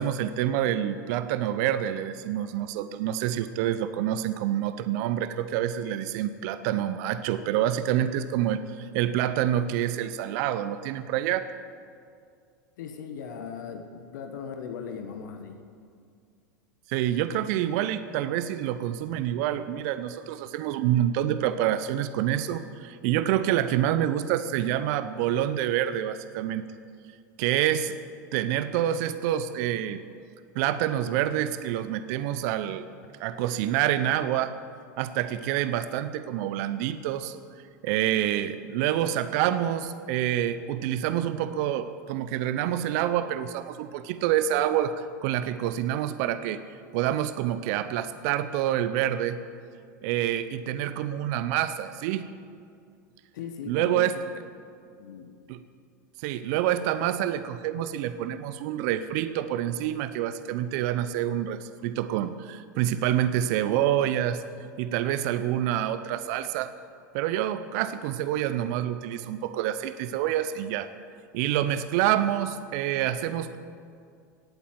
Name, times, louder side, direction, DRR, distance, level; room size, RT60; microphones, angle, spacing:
voice 1, 0.0-11.5 16.9-26.7 27.4-27.9 28.3-30.0 30.5-32.9 33.2-34.5 35.0-37.4 37.8-46.6 46.9-49.4 50.0-52.3 53.7-54.2 55.5-55.6 56.2-64.4 64.8-66.7 67.1-70.9 71.3-73.6, right 11 dB, 60° right, 12 dB, 0.7 m, -27 dB
voice 2, 12.8-15.6 53.3-54.2 55.0-55.4, left 7 dB, 70° left, 6 dB, 1.3 m, -38 dB
17.5 x 8.5 x 7.6 m, 2.3 s
hypercardioid pair, 90°, 10 cm